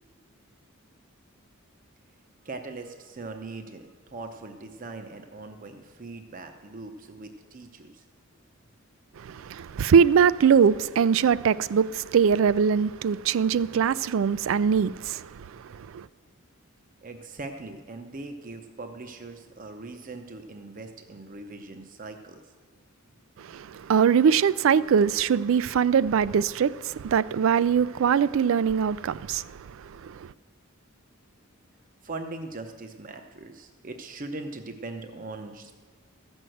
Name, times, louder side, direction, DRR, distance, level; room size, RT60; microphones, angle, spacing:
voice 1, 2.4-8.0 17.0-22.4 32.0-35.7, right 3 dB, 40° right, 0.7 m, -40 dB
voice 2, 9.2-16.1 23.4-29.5 29.8-30.3, right 7 dB, 65° right, 0.3 m, -22 dB
14.5 x 6.2 x 7.8 m
head